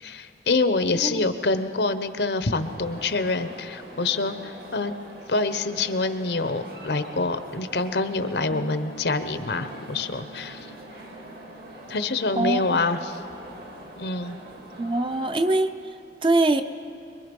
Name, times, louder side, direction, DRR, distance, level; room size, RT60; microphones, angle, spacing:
voice 1, 0.0-4.9 5.3-10.7 11.9-13.2 14.0-14.4, left 3 dB, 75° left, 10 dB, 1.0 m, -26 dB
voice 2, 0.9-1.3 12.4-12.8 14.8-15.7 16.2-16.6, right 2 dB, 30° right, 9 dB, 0.6 m, -23 dB
sound 1, 2.6-15.5, right 1 dB, 60° right, 2.2 m, -43 dB
sound 2, 8.5-14.8, left 1 dB, 35° left, 0.6 m, -48 dB
24.5 x 23.0 x 5.4 m, 2.6 s
head